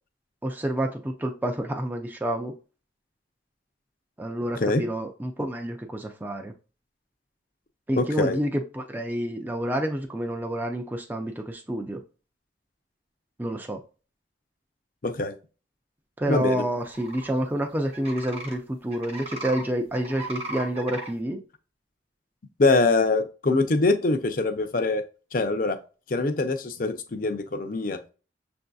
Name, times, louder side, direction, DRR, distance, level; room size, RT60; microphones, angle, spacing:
voice 1, 0.4-2.5 4.2-6.5 7.9-12.0 13.4-13.8 16.2-21.4, right 1 dB, 10° right, 0.4 m, -28 dB
voice 2, 8.0-8.4 15.0-15.4 16.3-16.6 22.6-25.0 25.3-25.8 26.1-28.0, left 3 dB, 50° left, 0.5 m, -23 dB
sound 1, 16.8-17.3 17.9-18.5 18.9-19.6 19.9-21.1, right 2 dB, 35° right, 0.9 m, -37 dB
6.6 x 2.6 x 2.3 m
head